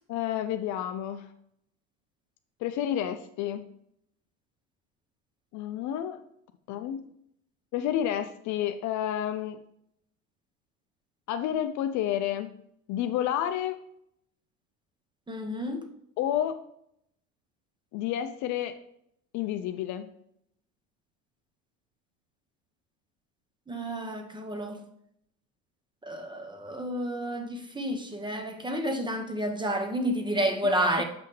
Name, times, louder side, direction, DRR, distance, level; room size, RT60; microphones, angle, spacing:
voice 1, 0.1-1.3 2.6-3.6 5.5-6.2 6.7-7.0 7.7-9.6 11.3-12.6 12.9-13.8 16.2-16.6 17.9-18.8 19.3-20.1, left 11 dB, 50° left, 0.6 m, -30 dB
voice 2, 15.3-15.8 23.7-24.8 26.0-31.0, equal, 10° right, 1.0 m, -30 dB
6.8 x 5.5 x 3.2 m
hypercardioid pair, 80°, 40 cm